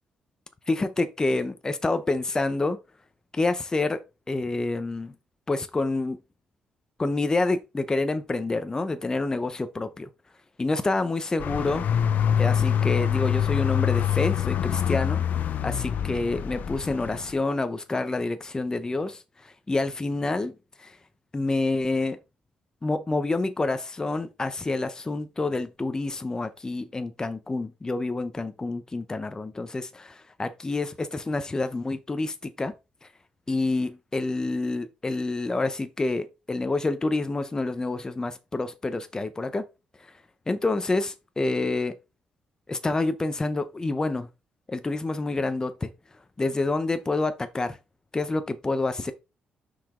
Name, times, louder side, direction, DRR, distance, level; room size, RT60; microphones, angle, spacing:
voice 1, 0.7-2.8 3.3-4.0 4.3-5.1 5.5-6.2 7.0-10.1 10.6-11.8 12.4-15.2 15.6-21.0 21.3-22.2 22.8-32.7 33.0-33.1 33.5-39.6 40.0-40.1 40.5-41.9 42.7-44.3 44.7-45.9 46.4-47.8 48.1-49.1, left 2 dB, 20° left, 0.7 m, -28 dB
sound 1, 11.4-17.3, left 9 dB, 65° left, 0.6 m, -25 dB
5.8 x 4.9 x 3.7 m
cardioid pair, 100°, 3 cm